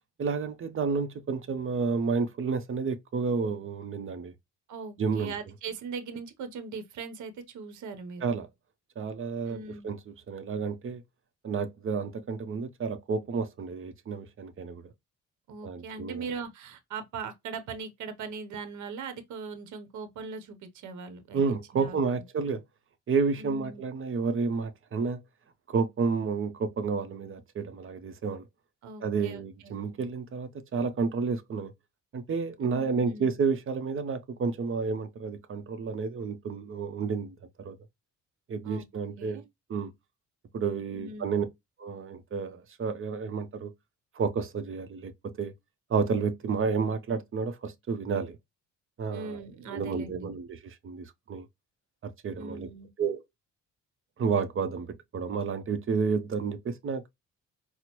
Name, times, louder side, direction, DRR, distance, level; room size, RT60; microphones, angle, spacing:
voice 1, 0.2-4.3 5.0-5.3 8.2-8.5 9.0-9.6 9.8-10.0 10.3-11.0 11.4-14.8 15.6-16.3 21.3-22.6 23.1-25.2 25.7-28.4 29.0-31.7 32.1-37.7 38.5-39.4 39.7-39.9 40.5-41.5 41.8-43.7 44.2-45.5 45.9-48.4 49.0-49.4 49.7-51.5 52.0-52.7 53.0-53.2 54.2-57.1, right 5 dB, 45° right, 0.7 m, -30 dB
voice 2, 4.7-8.2 9.5-9.9 15.5-21.4 21.7-22.0 23.4-23.8 28.8-29.9 32.6-33.3 38.6-38.9 39.2-39.4 40.9-41.4 49.1-50.3 52.3-52.9, right 5 dB, 75° right, 0.8 m, -40 dB
4.2 x 2.1 x 2.9 m
cardioid pair, 90°, 30 cm